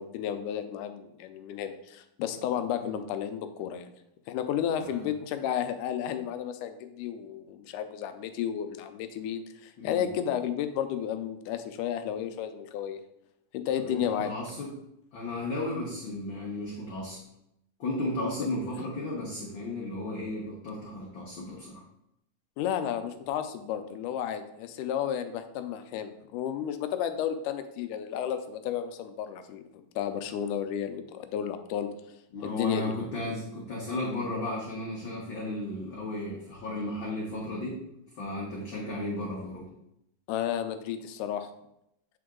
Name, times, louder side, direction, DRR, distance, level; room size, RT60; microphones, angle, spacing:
voice 1, 0.0-3.9 4.3-13.0 13.5-14.3 22.6-29.6 30.0-31.9 32.4-32.9 40.3-41.5, left 9 dB, 80° left, 8 dB, 2.1 m, -32 dB
voice 2, 4.8-5.1 9.8-10.1 13.8-14.7 15.1-17.2 17.8-21.8 32.3-37.8 38.1-39.7, left 1 dB, 65° left, -4 dB, 1.2 m, -34 dB
8.6 x 3.8 x 3.6 m, 0.80 s
omnidirectional pair, 3.7 m